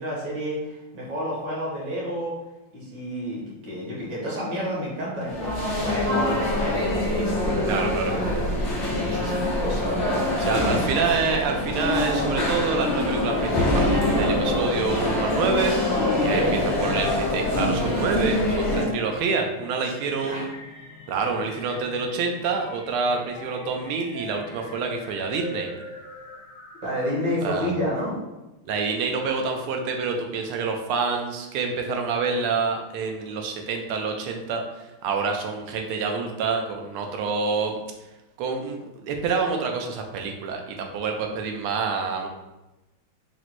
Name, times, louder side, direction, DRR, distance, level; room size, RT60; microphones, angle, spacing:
voice 1, 0.0-2.4 2.7-10.2 16.1-16.6 19.8-19.9 20.2-20.5 26.8-28.2, equal, 55° right, -5 dB, 1.8 m, -30 dB
sound 1, 5.2-18.8, left 1 dB, 85° left, 0.6 m, -24 dB
voice 2, 7.7-8.1 10.4-15.8 16.2-16.4 16.8-20.5 21.1-25.7 27.4-27.7 28.7-37.8 38.4-42.3, right 4 dB, 80° right, 3 dB, 1.5 m, -27 dB
sound 2, 12.8-27.4, left 3 dB, 60° left, 0.9 m, -37 dB
4.5 x 2.0 x 4.1 m, 1.0 s
omnidirectional pair, 2.4 m